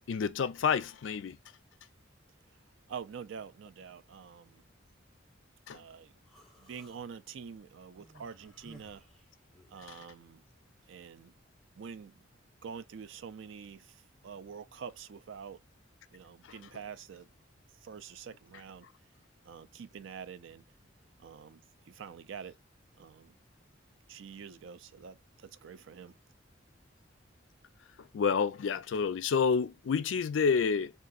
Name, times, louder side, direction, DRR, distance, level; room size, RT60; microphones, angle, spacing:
voice 1, 0.0-1.4 5.7-5.8 28.1-30.9, left 6 dB, 80° left, 0.4 m, -29 dB
voice 2, 2.9-4.6 5.7-6.1 6.6-9.0 9.7-10.4 10.9-11.3 11.8-12.2 12.6-15.6 16.1-17.3 17.8-18.9 19.4-20.6 21.2-21.6 21.9-22.6 23.0-23.4 24.1-26.1, right 6 dB, 80° right, 0.4 m, -46 dB
Human voice, 6.3-7.0 7.9-9.9, right 1 dB, ahead, 0.9 m, -57 dB
3.7 x 2.4 x 2.4 m
head